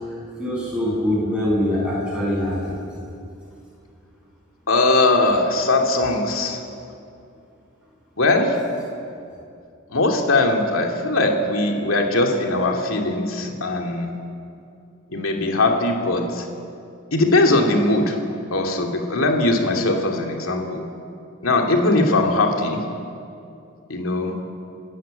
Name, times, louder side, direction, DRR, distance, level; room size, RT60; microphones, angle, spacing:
voice 1, 0.4-2.7, left 1 dB, 5° right, -6 dB, 7.8 m, -23 dB
voice 2, 4.7-6.6 8.2-8.6 9.9-14.1 15.1-16.5 17.1-18.2 18.5-20.9 21.4-22.8 23.9-24.3, left 2 dB, 85° left, 2 dB, 2.7 m, -20 dB
30.0 x 12.5 x 9.1 m, 2.6 s
head